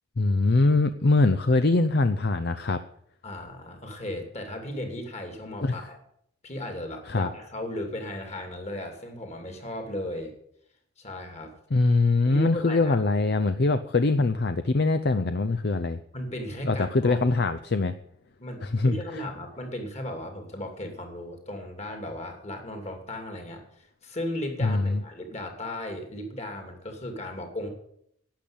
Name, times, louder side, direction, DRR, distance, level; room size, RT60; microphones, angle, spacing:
voice 1, 0.2-2.8 5.6-5.8 7.1-7.3 11.7-16.0 16.6-18.0 18.6-19.2 24.6-25.0, left 3 dB, 50° left, 11 dB, 0.6 m, -23 dB
voice 2, 3.2-6.0 6.4-10.3 11.0-11.5 12.2-13.0 16.1-17.5 18.4-27.7, left 1 dB, 35° left, 5 dB, 2.7 m, -36 dB
11.5 x 8.5 x 8.8 m, 0.72 s
head